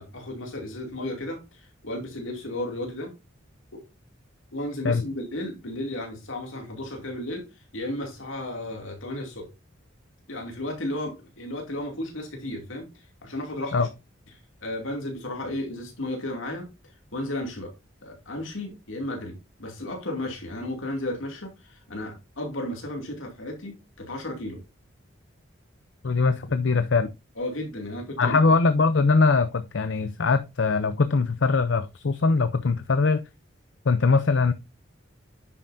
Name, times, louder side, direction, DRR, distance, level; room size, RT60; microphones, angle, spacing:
voice 1, 0.0-3.1 3.7-3.8 4.5-9.5 10.3-13.9 14.6-16.7 17.1-17.7 18.0-24.6 27.4-28.4, left 1 dB, 80° left, 2.5 m, -34 dB
voice 2, 26.0-27.1 28.2-33.2 33.9-34.5, left 4 dB, 65° left, 0.6 m, -22 dB
10.0 x 7.3 x 2.6 m
head